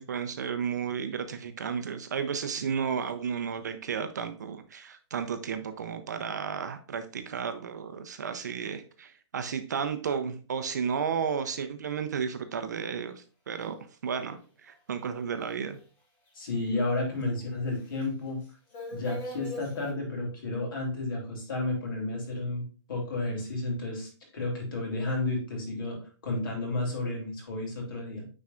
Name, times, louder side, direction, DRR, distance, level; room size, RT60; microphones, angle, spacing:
voice 1, 0.0-13.8 14.0-15.8, right 6 dB, 40° right, 8 dB, 0.5 m, -33 dB
sound 1, 15.4-15.5 16.3-16.4 16.6-17.2 17.8-18.1 18.4-19.9, left 1 dB, 15° left, 0.8 m, -40 dB
voice 2, 16.3-18.4 18.9-28.2, left 2 dB, 50° left, 0 dB, 2.7 m, -32 dB
9.4 x 4.3 x 2.4 m, 0.37 s
hypercardioid pair, 180°, 15 cm